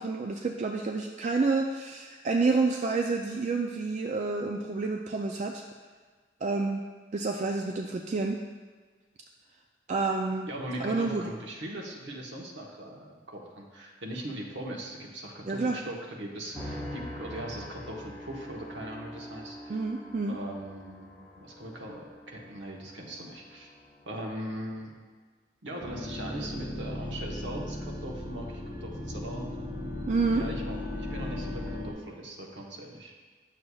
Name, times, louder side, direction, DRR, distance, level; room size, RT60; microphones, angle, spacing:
voice 1, 0.0-5.6 6.4-6.8 7.1-8.4 9.9-10.5 10.8-11.3 15.4-15.8 19.7-20.4 30.1-30.4, right 3 dB, 40° right, 2 dB, 0.3 m, -29 dB
voice 2, 10.5-19.8 20.3-23.7 24.1-25.0 25.6-29.4 30.3-33.1, right 1 dB, 75° right, -1 dB, 1.1 m, -40 dB
sound 1, 16.5-24.9, equal, ahead, 1.9 m, -44 dB
sound 2, 25.8-31.9, left 1 dB, 20° right, 2.1 m, -36 dB
9.6 x 6.5 x 2.3 m, 1.4 s
head